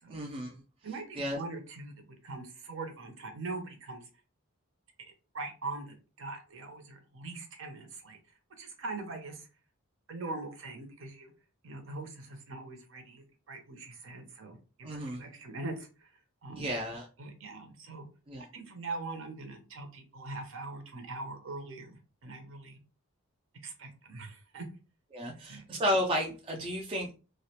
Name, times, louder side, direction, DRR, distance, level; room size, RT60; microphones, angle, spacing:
voice 1, 0.1-0.6 1.2-1.4 14.8-15.2 16.5-17.0 18.3-18.4 25.1-27.2, equal, 25° right, 0 dB, 0.3 m, -32 dB
voice 2, 0.8-4.1 5.3-8.2 8.6-9.5 10.1-11.3 11.6-16.1 16.4-16.7 17.2-18.1 18.4-22.8 23.6-24.7 25.3-25.8, right 3 dB, 65° right, 5 dB, 0.6 m, -42 dB
2.3 x 2.1 x 2.8 m, 0.33 s
head